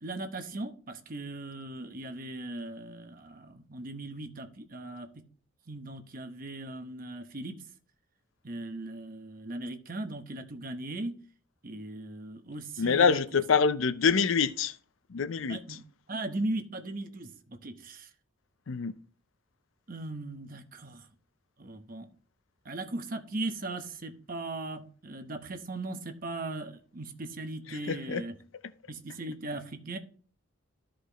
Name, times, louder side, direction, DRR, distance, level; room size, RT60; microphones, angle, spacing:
voice 1, 0.0-5.2 5.7-7.6 8.4-11.1 11.6-13.2 15.5-15.8 16.1-18.1 19.9-21.1 21.6-22.1 22.6-28.3 28.9-30.0, right 2 dB, 45° right, 1.0 m, -38 dB
voice 2, 12.8-14.7 15.1-15.8 18.7-18.9 27.7-28.2, left 5 dB, 80° left, 0.5 m, -26 dB
13.5 x 5.0 x 3.0 m
head